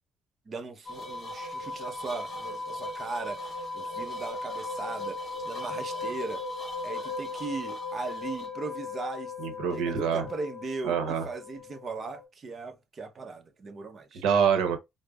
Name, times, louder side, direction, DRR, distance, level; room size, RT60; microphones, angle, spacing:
voice 1, 0.5-6.4 6.8-9.3 9.7-14.2, right 4 dB, 35° right, 0.7 m, -38 dB
sound 1, 0.9-12.2, left 2 dB, 30° left, 1.5 m, -37 dB
voice 2, 9.4-10.2 10.8-11.2 14.2-14.8, right 7 dB, 85° right, 0.8 m, -25 dB
5.0 x 2.0 x 2.3 m
cardioid pair, 110°, 0 cm